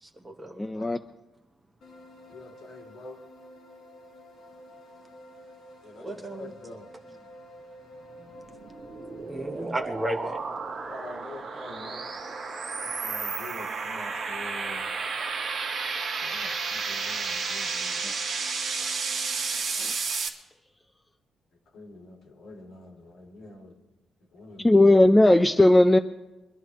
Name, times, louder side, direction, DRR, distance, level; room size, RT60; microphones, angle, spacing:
voice 1, 0.0-0.6 6.0-6.5 9.3-10.4, right 1 dB, 15° right, 3 dB, 0.9 m, -33 dB
voice 2, 0.6-1.0 18.0-18.1 19.8-20.0 24.6-26.0, left 1 dB, 10° left, 8 dB, 0.3 m, -18 dB
sound 1, 1.8-19.5, equal, 40° left, 5.8 m, -49 dB
voice 3, 2.3-3.2 5.8-6.9 9.5-9.7 10.8-12.0 12.8-14.8 16.2-18.0 21.7-23.8 24.3-25.2, left 2 dB, 60° left, -1 dB, 2.9 m, -46 dB
sound 2, 8.3-20.3, right 4 dB, 40° right, 1.7 m, -32 dB
23.5 x 12.5 x 3.1 m, 1.1 s
cardioid pair, 180°, 0 cm